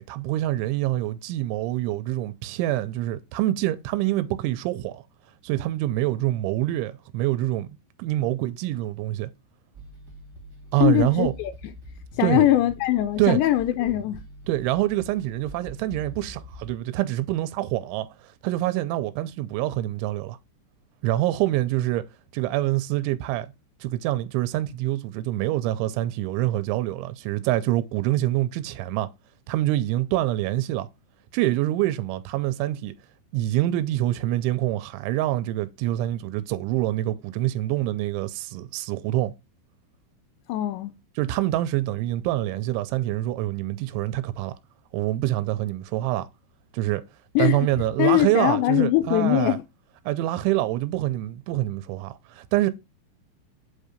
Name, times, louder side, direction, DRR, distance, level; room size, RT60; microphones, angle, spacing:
voice 1, 0.0-5.0 5.4-7.7 8.0-9.3 10.7-11.3 12.2-12.5 13.2-13.4 14.5-20.4 21.0-22.1 22.3-23.5 23.8-29.1 29.5-30.9 31.3-32.9 33.3-39.3 41.2-44.5 44.9-46.3 46.7-47.0 47.4-49.6 50.1-52.7, right 15 dB, 90° right, 2.9 m, -25 dB
super chill vibes rock loop my guy, 9.7-16.8, right 1 dB, 70° right, 0.9 m, -44 dB
voice 2, 10.8-11.5 12.2-14.2 40.5-40.9 47.4-47.7 48.0-49.6, left 14 dB, 85° left, 2.6 m, -21 dB
8.0 x 2.7 x 5.0 m
omnidirectional pair, 5.2 m